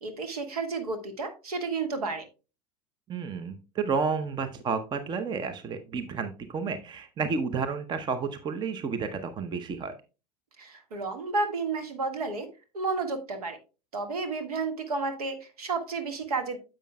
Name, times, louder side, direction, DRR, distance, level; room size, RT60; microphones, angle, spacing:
voice 1, 0.0-2.2 10.6-12.5 12.7-13.6 13.9-16.6, right 3 dB, 65° right, 8 dB, 1.7 m, -31 dB
voice 2, 3.1-9.9, right 5 dB, 20° right, 10 dB, 0.7 m, -31 dB
10.0 x 7.6 x 2.2 m, 0.31 s
figure-of-eight pair, 85°, 21 cm